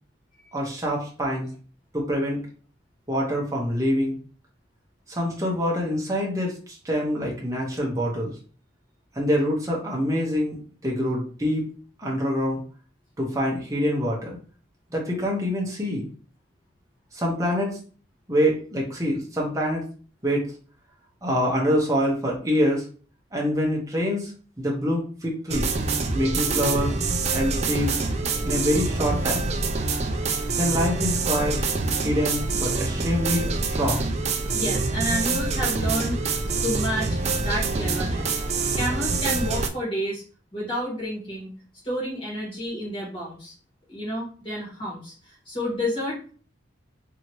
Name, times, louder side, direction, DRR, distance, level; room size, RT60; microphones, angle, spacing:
voice 1, 0.5-1.5 1.9-2.4 3.1-4.2 5.1-8.3 9.1-10.6 10.8-11.7 12.0-12.6 13.2-14.4 14.9-16.1 17.1-17.8 18.3-19.8 20.2-20.5 21.2-22.8 23.3-24.3 24.6-25.7 26.1-27.0 27.3-27.9 28.4-29.5 30.5-31.6 32.0-34.1, equal, 15° right, -3 dB, 0.7 m, -25 dB
sound 1, 25.5-39.7, right 3 dB, 35° right, 0.3 m, -26 dB
voice 2, 34.5-36.4 36.6-38.4 38.7-40.2 40.5-41.5 41.8-43.5 43.9-46.2, equal, 25° left, -5 dB, 1.5 m, -30 dB
2.8 x 2.8 x 3.0 m, 0.41 s
head